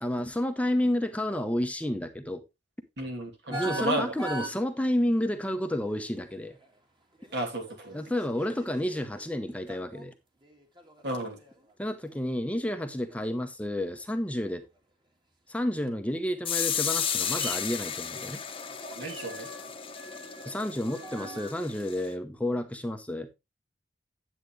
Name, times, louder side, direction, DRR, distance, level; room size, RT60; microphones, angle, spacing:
voice 1, 0.0-2.4 3.5-6.6 7.9-10.1 11.8-14.6 15.5-18.4 20.4-23.3, left 1 dB, 10° left, 0.9 m, -30 dB
voice 2, 3.0-4.1 7.3-8.0 11.0-11.4 18.8-19.5, right 1 dB, 65° right, 3.0 m, -33 dB
sound 1, 3.5-4.6 5.8-6.8 7.1-10.1 10.4-11.7 12.1-12.4 12.8-13.4 14.0-14.1 14.5-14.8 15.9-16.0 17.3-17.6 18.3-21.5, right 2 dB, 25° right, 2.1 m, -42 dB
sound 2, 16.4-22.1, left 8 dB, 30° left, 1.1 m, -33 dB
10.5 x 8.3 x 3.2 m
head